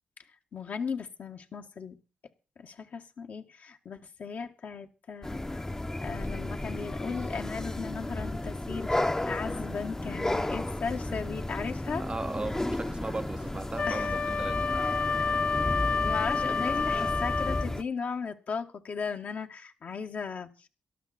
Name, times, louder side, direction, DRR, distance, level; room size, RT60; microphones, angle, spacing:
voice 1, 0.5-2.0 2.6-5.7 6.0-12.0 13.9-14.1 14.8-14.9 15.7-20.7, left 5 dB, 65° left, 1.9 m, -37 dB
sound 1, 5.2-17.8, left 1 dB, 15° left, 1.0 m, -33 dB
sound 2, 9.2-11.3 11.6-12.4 12.8-13.7 14.0-14.3, left 6 dB, 85° left, 5.6 m, -62 dB
voice 2, 12.0-14.7, right 3 dB, 30° right, 0.8 m, -37 dB
Wind instrument woodwind instrument, 13.8-17.8, left 4 dB, 40° left, 0.7 m, -29 dB
18.5 x 13.0 x 4.4 m
supercardioid pair, 45°, 3 cm